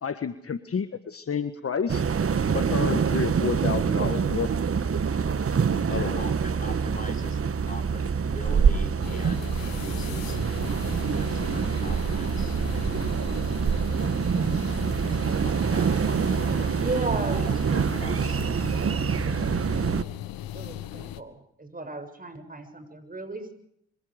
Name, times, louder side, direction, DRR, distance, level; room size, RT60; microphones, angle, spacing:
voice 1, 0.0-2.0 2.5-4.5 5.7-6.2, left 6 dB, 40° left, 10 dB, 1.6 m, -30 dB
sound 1, 1.9-20.0, right 6 dB, 40° right, 1.5 m, -26 dB
voice 2, 6.0-10.4 11.1-12.6 15.2-17.0 17.4-18.4, left 2 dB, 20° left, 3 dB, 6.2 m, -43 dB
sound 2, 9.0-21.2, left 13 dB, 70° left, 1.4 m, -38 dB
voice 3, 16.8-17.5 20.5-23.5, right 2 dB, 25° right, 8 dB, 7.3 m, -34 dB
26.0 x 25.5 x 5.2 m, 0.75 s
hypercardioid pair, 50°, 36 cm